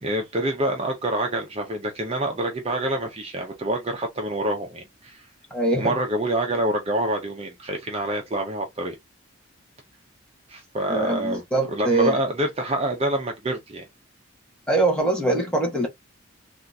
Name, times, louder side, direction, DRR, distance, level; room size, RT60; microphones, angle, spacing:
voice 1, 0.0-5.3 5.7-9.0 10.5-11.4 11.7-13.8, right 1 dB, 30° right, 0.6 m, -26 dB
voice 2, 5.5-5.9 10.9-12.2 14.7-15.9, right 2 dB, 5° left, 1.0 m, -23 dB
3.5 x 2.4 x 2.6 m
head